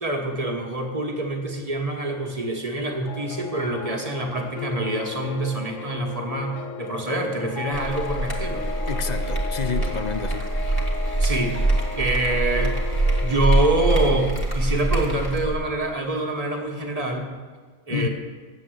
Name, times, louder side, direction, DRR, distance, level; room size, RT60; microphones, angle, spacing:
voice 1, 0.0-8.7 11.2-11.5 11.9-12.8 13.2-17.3 17.9-18.1, right 2 dB, 30° right, 1 dB, 1.2 m, -26 dB
sound 1, 3.1-13.4, left 6 dB, 80° left, 1.0 m, -36 dB
sound 2, 7.7-15.5, right 2 dB, 15° left, 1.8 m, -24 dB
voice 2, 8.9-10.5 17.9-18.1, left 6 dB, 50° left, 8 dB, 0.5 m, -29 dB
8.5 x 7.4 x 7.7 m, 1.5 s
omnidirectional pair, 1.3 m